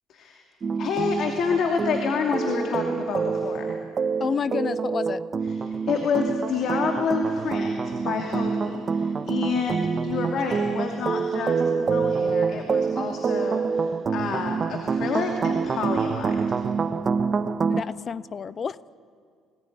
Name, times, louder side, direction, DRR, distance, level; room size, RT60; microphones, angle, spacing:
voice 1, 0.1-0.4 0.8-3.8 5.7-16.6, left 5 dB, 60° left, 2 dB, 2.5 m, -29 dB
sound 1, 0.6-17.8, right 5 dB, 40° right, 0.9 m, -26 dB
voice 2, 4.2-5.2 17.7-19.0, left 6 dB, 40° left, 19 dB, 0.5 m, -30 dB
20.5 x 19.0 x 9.3 m, 2.1 s
supercardioid pair, 75°, 0 cm